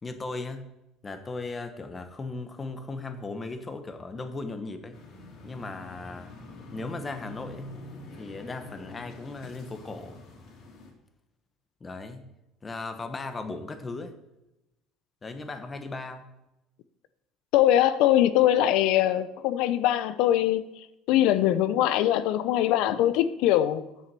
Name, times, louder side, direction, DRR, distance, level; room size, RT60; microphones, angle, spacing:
voice 1, 0.0-0.7 1.0-5.0 5.4-6.3 6.7-7.7 8.2-10.2 11.8-12.3 12.6-14.2 15.2-16.3, left 3 dB, 20° left, 1.0 m, -37 dB
sound 1, 4.9-10.9, left 2 dB, 50° left, 2.7 m, -45 dB
voice 2, 17.5-23.8, left 12 dB, 70° left, 0.7 m, -22 dB
9.3 x 7.1 x 6.2 m
cardioid pair, 135°, 0 cm